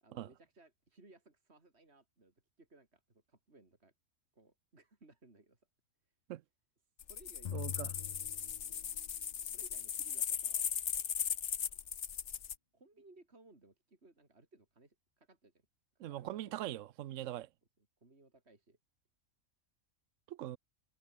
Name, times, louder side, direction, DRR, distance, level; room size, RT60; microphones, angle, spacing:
voice 1, 0.0-3.9 4.3-5.6 7.1-7.8 8.7-8.9 9.5-10.7 12.7-15.5 16.0-16.8 18.0-18.8, right 2 dB, 50° right, 4.2 m, -62 dB
sound 1, 7.0-12.6, left 8 dB, 60° left, 1.3 m, -38 dB
sound 2, 7.4-9.2, left 9 dB, 85° left, 0.3 m, -44 dB
voice 2, 7.5-7.9 16.0-17.5 20.3-20.6, right 13 dB, 70° right, 1.0 m, -41 dB
omnidirectional pair, 1.4 m